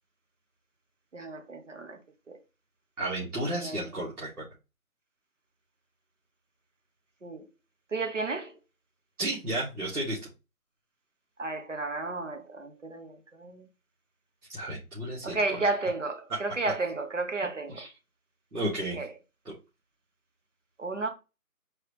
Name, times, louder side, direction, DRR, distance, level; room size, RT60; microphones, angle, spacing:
voice 1, 1.1-2.0 2.3-2.4 3.5-3.8 7.2-7.4 7.9-8.5 11.4-13.7 15.2-17.8 18.9-19.1 20.8-21.1, right 3 dB, 55° right, 1.1 m, -32 dB
voice 2, 3.0-4.4 9.2-10.2 14.5-15.4 16.3-16.4 17.8-17.9 18.5-19.0, right 1 dB, 80° right, 2.2 m, -32 dB
4.7 x 3.0 x 3.3 m
figure-of-eight pair, 175°, 44 cm